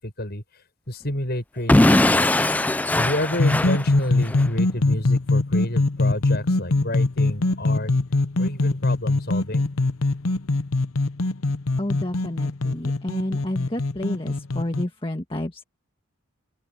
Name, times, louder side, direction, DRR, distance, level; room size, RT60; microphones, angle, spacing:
voice 1, 0.0-0.4 0.9-2.2 3.0-7.9 8.4-9.7, left 1 dB, 50° left, 7.3 m, -29 dB
Explosion / Shatter, 1.7-4.5, left 1 dB, 5° left, 0.3 m, -20 dB
ladder arp, 3.3-14.8, left 2 dB, 80° left, 0.9 m, -23 dB
voice 2, 11.8-15.6, left 1 dB, 25° left, 1.6 m, -30 dB
open air
head